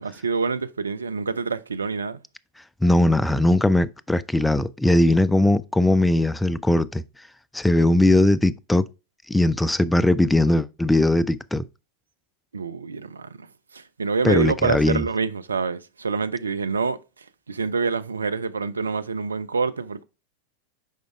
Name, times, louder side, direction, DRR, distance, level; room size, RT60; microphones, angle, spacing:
voice 1, 0.0-2.2 12.5-13.5 13.7-17.0 17.5-20.0, right 5 dB, 75° right, 0.5 m, -26 dB
voice 2, 2.8-7.0 7.5-8.8 9.3-11.6 14.2-15.0, left 1 dB, 5° left, 0.4 m, -19 dB
7.4 x 5.1 x 3.4 m
figure-of-eight pair, 90°, 0 cm